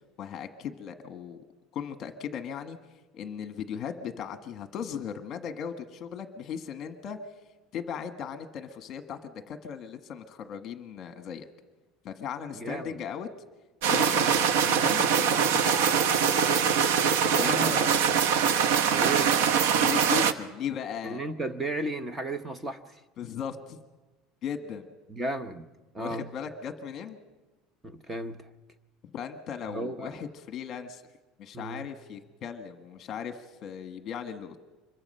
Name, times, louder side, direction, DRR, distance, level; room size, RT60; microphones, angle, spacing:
voice 1, 0.2-1.4 1.7-2.8 3.1-7.2 7.7-11.5 12.0-13.3 13.9-15.8 17.2-17.9 19.8-21.2 23.2-23.8 24.4-24.9 26.0-27.2 29.0-31.0 31.4-34.6, left 7 dB, 35° left, 8 dB, 1.3 m, -37 dB
voice 2, 12.5-13.0 17.2-18.1 18.9-19.3 21.0-23.0 25.1-25.7 25.9-26.3 27.8-28.5 29.7-30.2 31.5-31.9, right 2 dB, 10° right, 11 dB, 0.8 m, -34 dB
sound 1, 13.8-20.3, right 7 dB, 80° right, 0.9 m, -23 dB
Wind instrument woodwind instrument, 14.9-18.6, left 1 dB, 10° left, 3.9 m, -46 dB
25.5 x 22.0 x 5.5 m, 1.2 s
cardioid pair, 170°, 0 cm